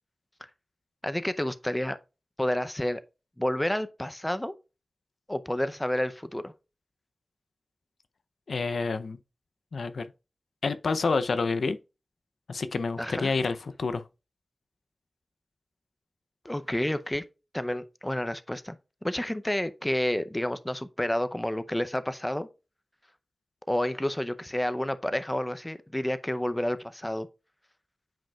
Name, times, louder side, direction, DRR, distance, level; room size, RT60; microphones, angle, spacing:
voice 1, 1.0-2.0 2.4-3.0 3.4-4.5 5.3-6.5 13.0-13.3 16.4-17.2 17.5-18.8 19.0-22.5 23.7-27.3, left 1 dB, 10° left, 0.5 m, -30 dB
voice 2, 8.5-9.2 9.7-10.1 10.6-11.8 12.5-14.0, left 4 dB, 85° left, 0.5 m, -28 dB
8.9 x 5.1 x 2.3 m
wide cardioid pair, 105°, 0 cm